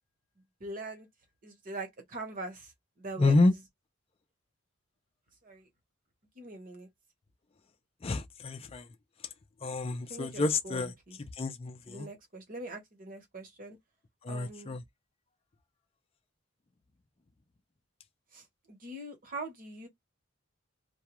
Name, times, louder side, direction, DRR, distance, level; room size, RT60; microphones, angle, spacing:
voice 1, 0.6-1.1 1.4-3.6 5.4-5.7 6.3-6.9 10.1-11.2 11.9-13.8 14.3-14.8 18.3-19.9, right 2 dB, 45° right, 1.0 m, -43 dB
voice 2, 3.2-3.5 8.0-8.9 9.6-10.9 11.4-12.1 14.2-14.8, left 3 dB, 30° left, 0.4 m, -28 dB
2.3 x 2.2 x 2.9 m
head